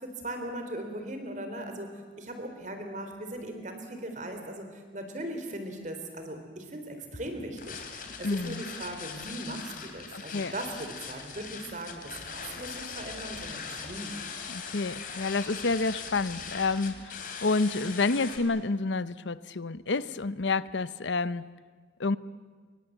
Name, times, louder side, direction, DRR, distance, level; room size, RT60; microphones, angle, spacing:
voice 1, 0.0-1.9 2.2-4.7 4.9-14.1, right 1 dB, 40° right, 6 dB, 3.9 m, -39 dB
sound 1, 7.6-18.4, left 5 dB, 50° left, 3.1 m, -40 dB
voice 2, 8.2-8.6 10.1-10.5 14.5-21.4 22.0-22.2, left 3 dB, 80° left, 16 dB, 0.7 m, -29 dB
27.0 x 24.0 x 8.1 m, 1.5 s
head